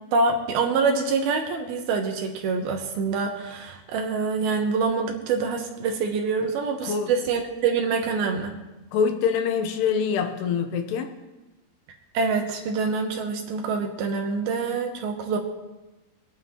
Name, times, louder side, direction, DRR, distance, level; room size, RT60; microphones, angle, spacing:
voice 1, 0.1-8.5 12.1-15.4, right 4 dB, 75° right, 3 dB, 2.6 m, -25 dB
voice 2, 8.9-11.1, left 6 dB, 80° left, 6 dB, 2.9 m, -25 dB
23.5 x 9.3 x 2.9 m, 1.1 s
omnidirectional pair, 4.9 m